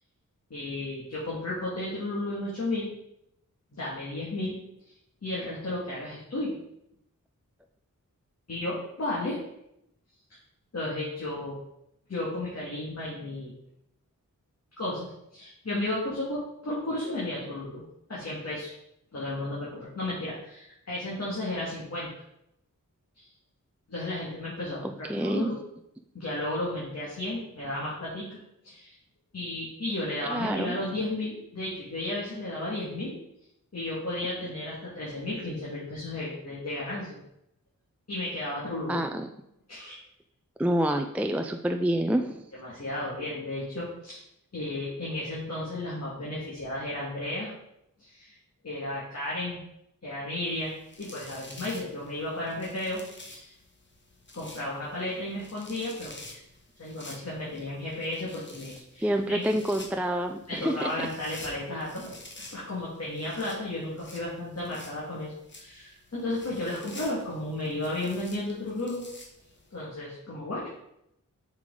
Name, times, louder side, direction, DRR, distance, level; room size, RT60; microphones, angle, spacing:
voice 1, 0.5-2.9 3.7-4.6 5.2-6.6 8.5-9.4 10.3-10.4 10.7-11.6 12.1-13.5 14.8-17.8 18.1-18.7 19.1-22.1 23.1-23.3 23.9-25.6 26.1-28.4 28.6-29.0 29.3-33.1 33.7-37.2 38.1-39.0 39.7-40.0 42.5-44.2 44.5-47.5 48.0-48.4 48.6-49.6 50.0-53.5 54.3-56.4 56.8-59.4 60.5-62.2 62.5-69.1 69.7-70.7, left 1 dB, 50° left, -7 dB, 2.0 m, -33 dB
voice 2, 24.8-25.5 30.3-30.7 38.9-39.3 40.6-42.4 59.0-60.9, right 1 dB, 5° right, 5 dB, 0.4 m, -27 dB
sound 1, 50.5-69.7, left 2 dB, 35° left, 1.3 m, -50 dB
7.2 x 4.9 x 3.8 m, 0.80 s
wide cardioid pair, 80°, 33 cm